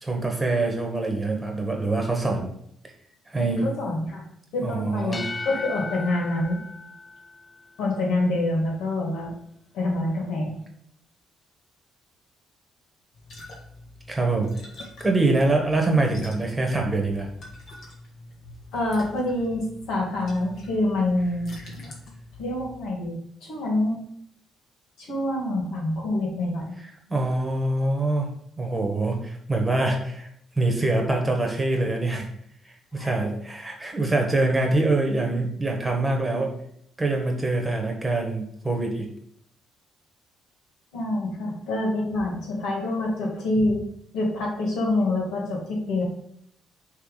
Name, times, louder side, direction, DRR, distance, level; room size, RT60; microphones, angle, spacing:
voice 1, 0.0-2.5 3.3-3.7 4.6-5.3 14.1-14.5 15.0-17.3 27.1-28.3 28.6-30.3 30.6-32.3 32.6-36.5 37.0-39.1, right 2 dB, 15° right, 2 dB, 1.3 m, -24 dB
voice 2, 3.6-4.2 4.5-6.6 7.8-9.4 9.7-10.6 18.7-21.5 22.4-23.2 23.4-24.0 25.0-26.8 32.9-33.3 40.9-43.8 44.1-46.0, left 2 dB, 85° left, -2 dB, 2.1 m, -26 dB
sound 1, 5.0-7.8, left 3 dB, 25° left, 0.4 m, -36 dB
sound 2, 13.1-22.9, left 1 dB, 60° left, 1.9 m, -44 dB
5.7 x 3.3 x 4.9 m, 0.70 s
cardioid pair, 100°, 0 cm